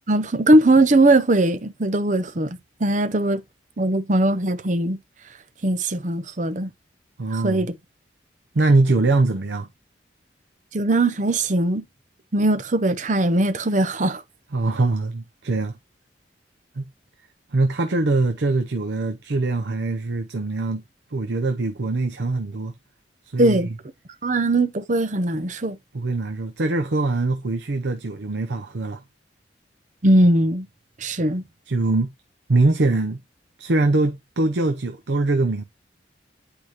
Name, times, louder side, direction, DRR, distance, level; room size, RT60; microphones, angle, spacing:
voice 1, 0.1-3.4 3.8-5.0 5.6-6.7 7.3-7.7 10.7-11.8 12.3-14.2 23.4-23.7 24.2-25.8 30.0-30.7 31.0-31.4, right 1 dB, 40° right, 0.8 m, -20 dB
voice 2, 7.2-7.7 8.5-9.7 14.5-15.8 16.8-16.9 17.5-20.8 21.1-22.7 23.3-23.8 25.9-29.0 31.7-32.1 32.5-33.2 33.6-35.6, right 2 dB, 75° right, 0.7 m, -22 dB
8.6 x 5.0 x 2.9 m
head